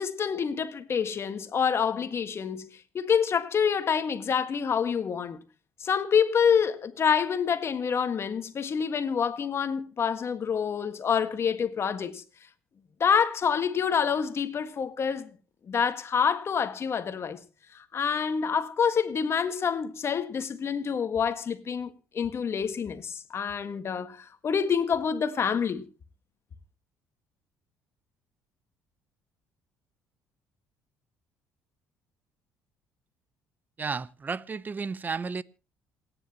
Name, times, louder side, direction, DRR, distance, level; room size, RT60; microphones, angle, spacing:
voice 1, 0.0-2.7 2.9-5.4 5.8-12.2 13.0-15.3 15.7-17.4 17.7-25.9, left 7 dB, 40° left, 1.6 m, -27 dB
voice 2, 33.8-35.4, right 5 dB, 30° right, 0.7 m, -33 dB
27.5 x 10.0 x 3.0 m
supercardioid pair, 90°, 6 cm